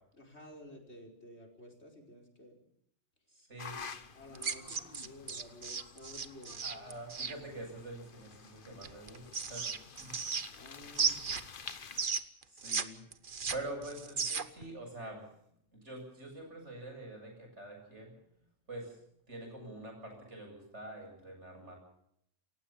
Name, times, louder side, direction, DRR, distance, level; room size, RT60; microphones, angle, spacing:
voice 1, 0.1-2.6 4.1-6.6 10.5-11.5, left 1 dB, 70° left, 2 dB, 5.1 m, -53 dB
voice 2, 3.4-3.8 6.6-9.7 10.0-10.2 12.5-13.0 13.5-15.2 15.7-18.1 18.7-19.0 19.3-21.8, right 1 dB, 80° right, 2 dB, 8.4 m, -45 dB
sound 1, 3.6-12.1, left 6 dB, 50° left, 1.2 m, -50 dB
sound 2, 4.3-7.3 8.8-10.7 10.9-12.8 13.1-14.6, right 5 dB, 50° right, 1.3 m, -35 dB
28.5 x 15.5 x 7.3 m, 0.72 s
omnidirectional pair, 1.2 m